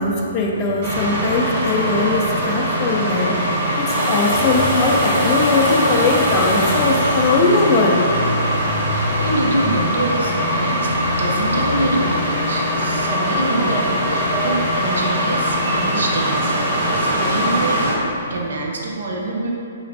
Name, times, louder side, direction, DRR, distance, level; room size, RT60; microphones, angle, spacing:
voice 1, 0.0-3.4 3.8-8.1, left 3 dB, 30° left, 0 dB, 0.4 m, -20 dB
sound 1, 0.8-17.9, equal, 45° right, 1.0 m, -21 dB
Domestic sounds home sounds, 3.9-9.7 11.6-11.7, left 1 dB, 20° right, 0.9 m, -25 dB
Motorcycle, 5.6-18.3, left 2 dB, 60° left, 0.7 m, -32 dB
voice 2, 8.9-18.0 18.3-19.5, right 2 dB, 80° right, -1 dB, 0.6 m, -25 dB
3.8 x 2.4 x 3.2 m, 2.5 s
hypercardioid pair, 155°, 0 cm